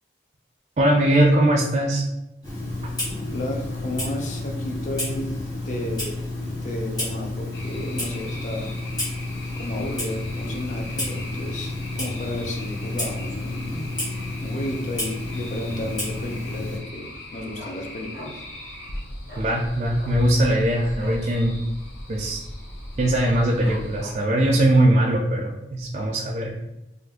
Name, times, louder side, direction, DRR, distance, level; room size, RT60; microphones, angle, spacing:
voice 1, 0.8-2.0 19.4-21.6 22.1-22.4 23.0-26.5, right 1 dB, 35° right, -1 dB, 0.4 m, -20 dB
Clock, 2.4-16.8, left 2 dB, 25° left, 1.0 m, -30 dB
voice 2, 3.3-5.4 5.6-6.2 6.6-8.7 9.5-13.8 14.4-18.5, left 1 dB, 40° left, 3 dB, 0.4 m, -33 dB
sound 1, 7.5-24.0, left 1 dB, 85° left, 0.6 m, -39 dB
Dog, 16.1-16.5 16.8-16.9 17.2-18.6 18.9-19.0 19.2-19.5 19.9-21.3 21.7-21.8 22.1-22.5 22.9-23.0 23.6-24.4 24.9-25.0, left 1 dB, 65° left, 1.0 m, -41 dB
2.5 x 2.4 x 3.6 m, 0.97 s
head